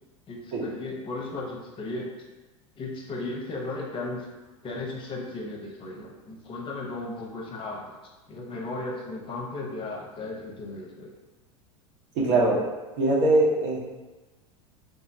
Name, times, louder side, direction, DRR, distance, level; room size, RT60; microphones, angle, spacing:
voice 1, 0.3-2.1 2.8-4.3 4.6-8.0 8.3-11.1, left 2 dB, 30° left, -1 dB, 0.7 m, -35 dB
voice 2, 12.1-12.6 13.0-13.8, right 2 dB, 60° right, -4 dB, 1.0 m, -21 dB
3.5 x 2.0 x 2.6 m, 1.2 s
hypercardioid pair, 90°, 17 cm